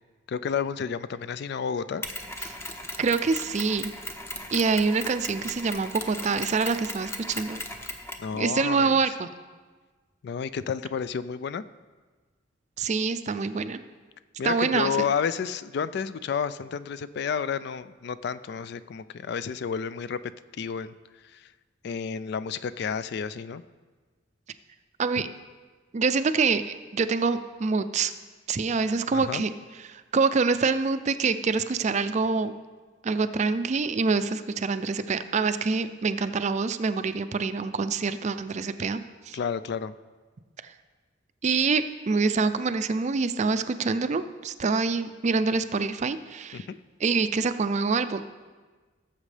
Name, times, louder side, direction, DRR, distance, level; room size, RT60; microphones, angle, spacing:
voice 1, 0.3-2.0 8.2-9.1 10.2-11.6 14.4-20.2 20.6-20.9 21.3-21.5 21.8-23.6 29.1-29.4 39.3-39.9 46.5-46.8, left 6 dB, 55° left, 14 dB, 0.3 m, -31 dB
Mechanisms, 2.0-8.3, left 1 dB, 15° left, 0.7 m, -37 dB
voice 2, 3.0-3.9 4.5-7.6 8.3-9.3 12.8-13.8 14.4-15.1 25.0-25.3 25.9-26.6 26.9-28.1 28.5-29.5 29.8-32.5 33.0-39.0 39.3-39.4 40.6-40.7 41.4-46.6 47.0-48.2, right 4 dB, 35° right, 11 dB, 0.4 m, -26 dB
17.5 x 7.3 x 3.3 m, 1.4 s
head